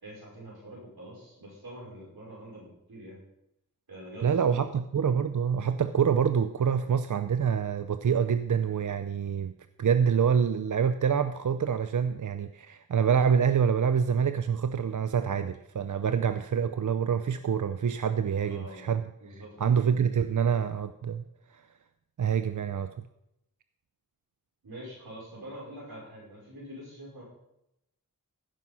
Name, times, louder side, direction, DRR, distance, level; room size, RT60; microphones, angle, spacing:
voice 1, 0.0-3.2 3.9-4.7 18.4-18.9 19.2-19.6 24.6-27.2, right 1 dB, 85° right, -5 dB, 5.5 m, -45 dB
voice 2, 4.2-9.5 9.8-19.0 19.6-21.2 21.5-21.7 22.2-22.9, right 7 dB, 55° right, 11 dB, 0.6 m, -26 dB
15.5 x 6.1 x 5.5 m, 0.83 s
cardioid pair, 40°, 36 cm